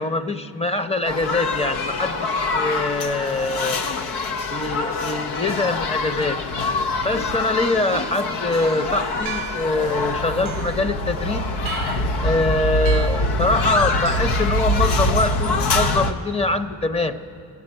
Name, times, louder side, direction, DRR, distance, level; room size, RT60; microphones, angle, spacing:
voice 1, 0.0-3.8 4.5-6.4 7.0-11.4 12.2-17.2, left 2 dB, 15° left, 9 dB, 0.7 m, -24 dB
sound 1, 1.0-16.1, left 2 dB, 85° left, 0.8 m, -24 dB
sound 2, 9.3-9.8 10.5-10.9 11.7-12.1 12.9-13.3 14.1-14.2, right 14 dB, 85° right, 0.5 m, -35 dB
15.0 x 8.4 x 9.9 m, 2.4 s
cardioid pair, 60°, 39 cm